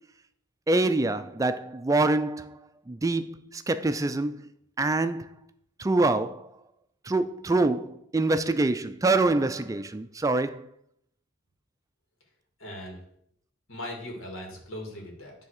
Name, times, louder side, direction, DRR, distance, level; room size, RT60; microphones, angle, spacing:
voice 1, 0.7-2.6 2.9-4.4 4.8-5.3 5.8-6.5 7.0-10.7, right 2 dB, 15° right, 0.3 m, -25 dB
voice 2, 12.6-13.0 13.7-15.3, left 1 dB, 85° left, 2.4 m, -39 dB
9.8 x 3.5 x 6.5 m
head